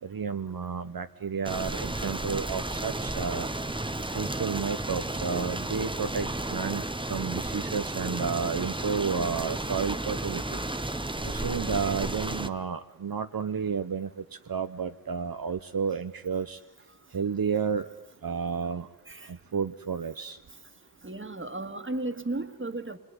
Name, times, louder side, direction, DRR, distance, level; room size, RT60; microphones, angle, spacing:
voice 1, 0.0-3.5 4.1-10.6 11.2-16.6 17.1-17.9 18.2-18.9 19.2-20.4, right 6 dB, 75° right, 8 dB, 0.8 m, -31 dB
sound 1, 1.4-12.5, right 2 dB, 15° right, 0.9 m, -33 dB
voice 2, 5.1-5.8 19.1-19.3 21.0-23.0, right 2 dB, 35° right, 7 dB, 1.8 m, -35 dB
27.0 x 21.0 x 9.7 m, 1.0 s
wide cardioid pair, 80°, 36 cm